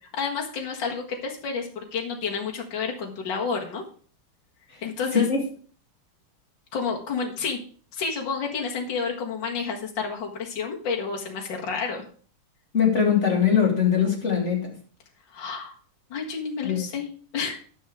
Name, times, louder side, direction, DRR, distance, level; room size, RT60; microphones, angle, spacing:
voice 1, 0.2-3.8 4.8-5.3 6.7-7.6 7.9-12.0 15.3-15.7 16.1-17.6, left 5 dB, 60° left, 0 dB, 2.4 m, -30 dB
voice 2, 12.7-14.8 16.6-16.8, left 7 dB, 30° left, 0 dB, 2.7 m, -22 dB
11.0 x 6.5 x 4.9 m, 0.43 s
omnidirectional pair, 2.4 m